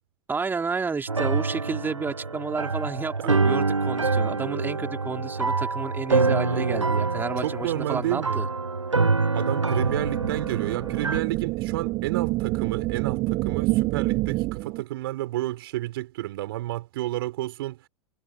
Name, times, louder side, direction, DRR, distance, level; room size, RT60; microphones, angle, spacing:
voice 1, 0.3-8.5, right 4 dB, 15° right, 3.9 m, -31 dB
sound 1, 1.1-11.2, right 4 dB, 90° right, 0.7 m, -26 dB
voice 2, 3.2-3.6 6.5-6.7 7.4-8.4 9.3-17.9, right 16 dB, 55° right, 5.4 m, -31 dB
sound 2, 9.8-14.8, right 20 dB, 35° right, 0.9 m, -27 dB
figure-of-eight pair, 95°, 15 cm